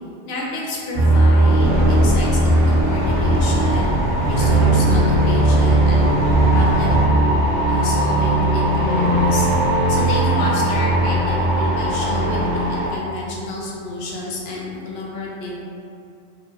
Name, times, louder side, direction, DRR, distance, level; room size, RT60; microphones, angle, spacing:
voice 1, 0.3-3.9 4.3-6.2 6.5-7.2 7.7-9.5 9.9-15.6, left 2 dB, 65° left, -4 dB, 0.8 m, -30 dB
sound 1, 0.9-12.9, right 1 dB, 25° right, 1.2 m, -18 dB
Mechanical fan, 1.5-7.0, equal, 70° right, 0.8 m, -24 dB
2.9 x 2.0 x 3.0 m, 2.4 s
omnidirectional pair, 1.2 m